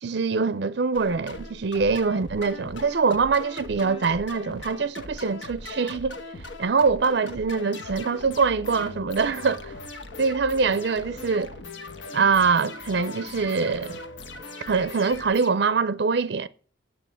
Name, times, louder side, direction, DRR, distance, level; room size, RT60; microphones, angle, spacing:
voice 1, 0.0-6.2 6.6-9.7 10.2-11.5 12.1-14.0 14.7-16.5, right 5 dB, 55° right, 0.4 m, -24 dB
sound 1, 0.9-15.5, left 2 dB, 70° left, 1.2 m, -39 dB
9.2 x 7.8 x 7.6 m
head